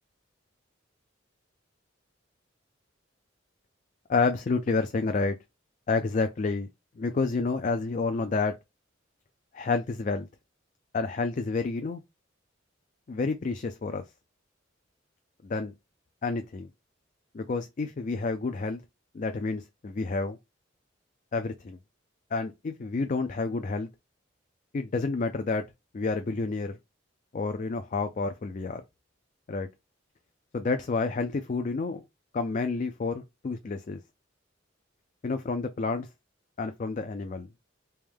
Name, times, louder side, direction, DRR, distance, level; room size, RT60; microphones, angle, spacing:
voice 1, 4.1-5.4 5.9-6.7 7.0-8.5 9.5-10.3 10.9-12.0 13.1-14.0 15.4-15.7 16.2-16.7 17.3-18.8 19.1-20.4 21.3-21.8 22.3-23.9 24.7-25.6 25.9-26.8 27.3-28.8 29.5-29.7 30.5-32.0 32.3-34.0 35.2-36.1 36.6-37.5, left 4 dB, 40° left, 0.4 m, -29 dB
3.4 x 3.1 x 3.4 m
head